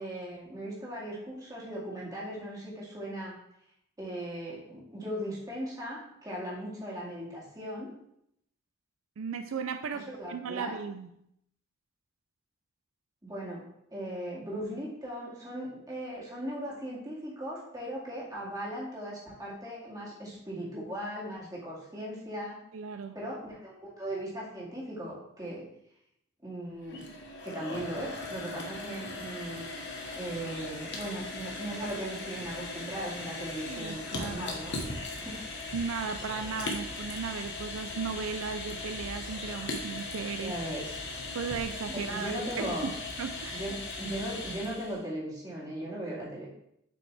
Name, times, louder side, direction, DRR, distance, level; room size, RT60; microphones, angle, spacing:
voice 1, 0.0-3.4 4.0-7.9 9.9-10.8 13.2-13.6 13.9-22.6 23.1-25.7 26.4-27.0 27.4-29.7 30.2-34.8 35.1-35.4 40.4-40.9 41.9-42.9 43.5-46.5, right 1 dB, 20° right, -6 dB, 2.2 m, -38 dB
voice 2, 9.2-11.2 22.7-23.2 33.7-34.5 35.7-40.6 41.3-42.9 43.2-43.6, right 5 dB, 80° right, 8 dB, 0.4 m, -36 dB
sound 1, 26.7-45.0, left 2 dB, 60° left, 1.2 m, -39 dB
7.4 x 5.5 x 3.3 m, 0.76 s
head